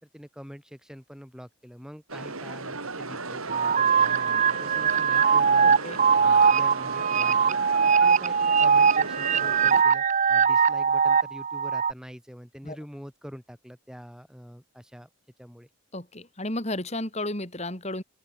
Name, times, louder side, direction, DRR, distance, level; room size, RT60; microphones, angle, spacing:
voice 1, 0.0-5.8 6.1-7.6 7.9-15.1 15.4-15.7, equal, 5° right, 5.7 m, -45 dB
sound 1, 2.1-9.8, right 3 dB, 80° right, 5.5 m, -35 dB
sound 2, 3.5-11.9, right 6 dB, 35° right, 0.5 m, -21 dB
voice 2, 5.6-6.0 12.6-12.8 15.9-18.0, left 1 dB, 30° left, 3.7 m, -33 dB
open air
head